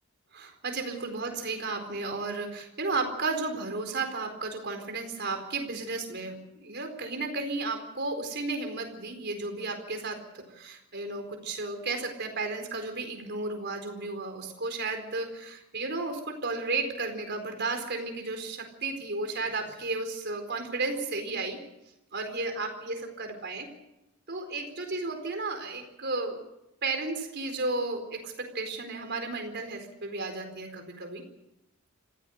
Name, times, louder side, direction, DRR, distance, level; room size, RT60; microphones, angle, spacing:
voice 1, 0.3-21.6 22.1-23.7 24.3-26.4 26.8-31.2, right 3 dB, 50° right, 5 dB, 4.3 m, -33 dB
26.5 x 16.0 x 6.5 m, 0.88 s
head